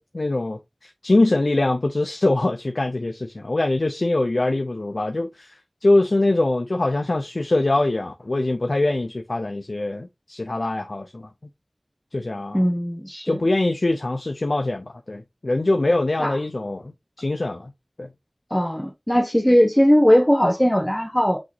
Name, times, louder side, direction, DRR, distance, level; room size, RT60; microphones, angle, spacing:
voice 1, 0.0-11.3 12.1-12.7 13.2-17.7 18.0-18.1, left 2 dB, 80° left, 0.6 m, -23 dB
voice 2, 12.5-13.3 16.2-16.4 18.5-21.4, equal, 10° left, 0.9 m, -19 dB
6.1 x 3.0 x 2.9 m
wide cardioid pair, 40°, 0 cm